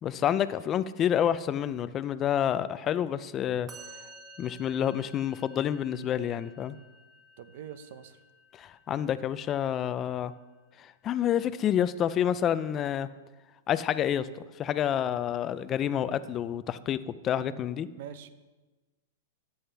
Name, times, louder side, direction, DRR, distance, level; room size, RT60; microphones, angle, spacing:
voice 1, 0.0-3.7 4.4-6.8 8.6-10.3 11.0-13.1 13.7-14.3 14.6-17.0 17.2-17.9, left 10 dB, 25° left, 15 dB, 0.4 m, -28 dB
Musical instrument, 3.7-11.0, right 1 dB, 20° right, 1.8 m, -53 dB
voice 2, 7.4-8.2 18.0-18.3, right 9 dB, 60° right, 12 dB, 0.9 m, -43 dB
13.5 x 9.4 x 3.4 m, 1.2 s
supercardioid pair, 150°, 0 cm